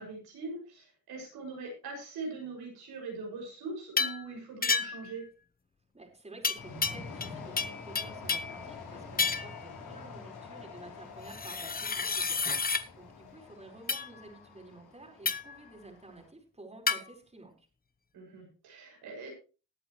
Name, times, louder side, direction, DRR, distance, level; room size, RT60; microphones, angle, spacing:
voice 1, 0.0-5.3 18.1-19.3, right 3 dB, 90° right, 0 dB, 6.4 m, -42 dB
sound 1, 4.0-4.2 4.6-5.1 6.4-7.3 7.6-8.6 9.2-9.6 11.3-12.8 13.9-14.1 15.2-15.6 16.9-17.0, left 5 dB, 25° left, 0.9 m, -30 dB
voice 2, 5.9-17.7, right 2 dB, 15° right, 1 dB, 4.7 m, -51 dB
sound 2, 6.5-16.3, left 4 dB, 80° left, 4.7 m, -47 dB
19.0 x 8.2 x 3.2 m, 0.34 s
cardioid pair, 75°, 37 cm